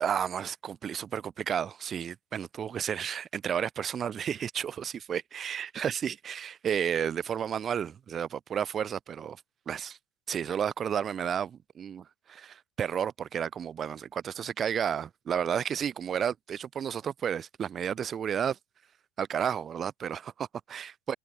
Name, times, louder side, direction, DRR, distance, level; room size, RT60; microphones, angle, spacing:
voice 1, 0.0-9.4 9.7-10.0 10.3-18.6 19.2-21.2, right 8 dB, 40° right, 0.4 m, -32 dB
hypercardioid pair, 85°, 0 cm